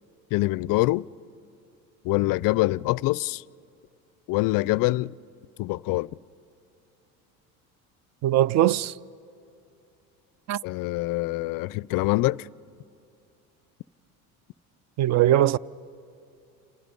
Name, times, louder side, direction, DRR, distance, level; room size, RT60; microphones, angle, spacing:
voice 1, 0.3-1.1 2.0-3.4 4.3-5.1 5.6-6.1 10.6-12.5, left 20 dB, 55° left, 0.5 m, -25 dB
voice 2, 8.2-8.9 10.5-10.6 15.0-15.6, right 13 dB, 40° right, 0.5 m, -20 dB
29.0 x 27.5 x 5.3 m
supercardioid pair, 85°, 43 cm